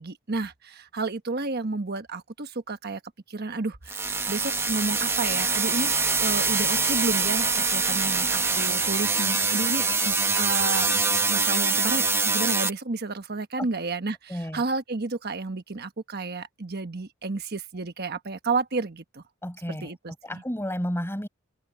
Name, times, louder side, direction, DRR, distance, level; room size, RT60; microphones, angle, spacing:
voice 1, 0.0-3.0 3.3-5.9 6.2-19.2 19.7-20.4, right 3 dB, 50° right, 1.3 m, -31 dB
sound 1, 3.9-12.7, right 4 dB, 10° right, 0.9 m, -24 dB
voice 2, 14.3-14.6 19.4-19.9 20.2-21.3, equal, 10° left, 5.2 m, -31 dB
head